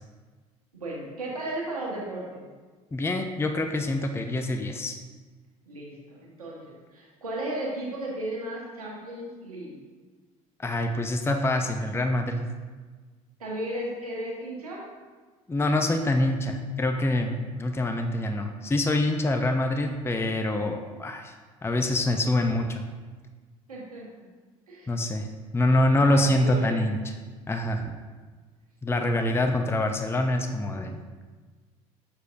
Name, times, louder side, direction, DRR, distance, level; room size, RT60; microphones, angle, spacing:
voice 1, 0.7-2.5 5.7-9.7 13.4-14.9 23.7-24.1 24.7-24.9 25.9-26.8, right 1 dB, 90° right, -3 dB, 1.4 m, -35 dB
voice 2, 2.9-5.0 10.6-12.4 15.5-21.3 21.6-22.8 24.9-25.3 25.5-27.0 27.5-28.0 28.8-31.0, left 1 dB, 15° left, 5 dB, 0.6 m, -25 dB
7.1 x 6.3 x 2.7 m, 1.4 s
hypercardioid pair, 65°, 18 cm